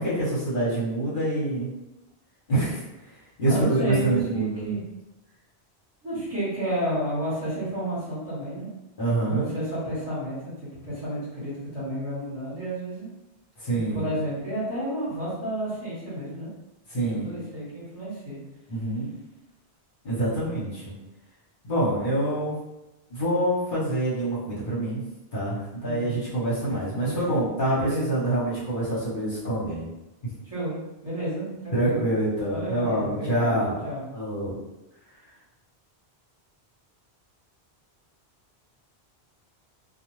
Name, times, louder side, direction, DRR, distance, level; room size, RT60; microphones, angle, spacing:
voice 1, 0.0-1.7 2.5-2.8 3.4-4.7 9.0-9.5 13.6-14.0 16.9-17.3 18.7-19.1 20.0-20.9 21.6-22.6 23.1-25.0 25.3-29.9 30.2-30.3 31.7-33.7 34.1-34.6, right 1 dB, 50° left, -9 dB, 1.1 m, -26 dB
voice 2, 3.4-4.8 6.0-8.7 9.2-13.1 13.7-16.5 16.9-18.4 25.8-26.1 26.6-27.2 27.7-28.1 30.4-30.8 31.0-32.0 32.5-34.0, right 1 dB, 35° right, -11 dB, 1.2 m, -31 dB
2.4 x 2.3 x 3.1 m, 0.97 s
omnidirectional pair, 1.1 m